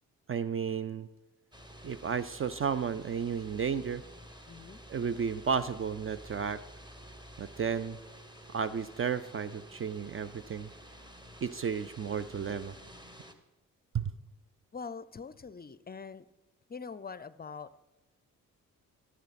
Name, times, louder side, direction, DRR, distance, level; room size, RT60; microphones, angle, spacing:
voice 1, 0.3-1.1 1.8-4.0 4.9-6.6 7.4-8.0 8.5-10.7 11.4-12.7 13.9-14.1, right 6 dB, 40° right, 14 dB, 0.5 m, -33 dB
sound 1, 1.5-13.3, equal, 15° right, 1.5 m, -51 dB
voice 2, 4.5-4.8 14.7-16.3 16.7-17.8, left 5 dB, 30° left, 17 dB, 0.5 m, -43 dB
15.5 x 8.5 x 4.2 m, 1.1 s
cardioid pair, 65°, 34 cm